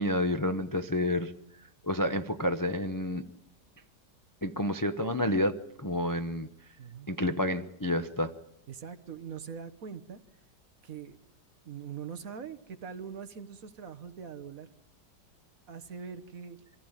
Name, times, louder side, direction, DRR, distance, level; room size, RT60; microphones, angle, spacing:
voice 1, 0.0-1.3 1.8-3.2 4.4-6.5 7.1-8.3, left 1 dB, 20° left, 8 dB, 0.5 m, -29 dB
voice 2, 6.8-7.1 8.7-10.2 10.8-11.2 11.6-14.7 15.7-16.6, right 7 dB, 55° right, 11 dB, 1.5 m, -42 dB
25.0 x 15.0 x 9.0 m, 0.81 s
omnidirectional pair, 1.8 m